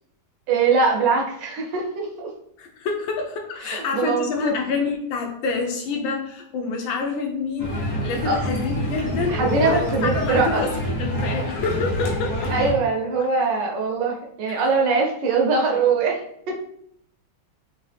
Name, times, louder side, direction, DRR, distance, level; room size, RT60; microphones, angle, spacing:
voice 1, 0.5-2.3 3.6-4.5 8.2-8.4 9.3-10.6 12.5-16.2 16.5-16.6, right 4 dB, 70° right, 0 dB, 1.2 m, -22 dB
voice 2, 2.6-10.7 11.0-12.5 14.5-14.6, left 4 dB, 75° left, 2 dB, 1.4 m, -27 dB
sound 1, 7.6-12.7, equal, 60° left, 1.3 m, -26 dB
3.7 x 2.7 x 3.3 m, 0.70 s
omnidirectional pair, 2.2 m